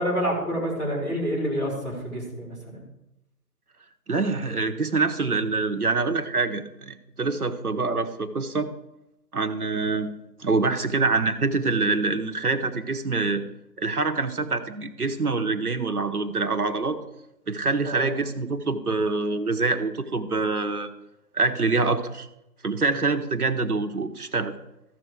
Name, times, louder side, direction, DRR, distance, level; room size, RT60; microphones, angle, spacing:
voice 1, 0.0-2.8 17.8-18.1, equal, 10° left, -11 dB, 2.1 m, -28 dB
voice 2, 4.1-8.7 9.3-10.1 10.4-13.4 13.8-17.0 17.5-20.9 21.3-22.3 22.6-24.5, right 3 dB, 60° right, 7 dB, 1.2 m, -25 dB
14.5 x 6.8 x 4.7 m, 0.89 s
figure-of-eight pair, 170°, 50 cm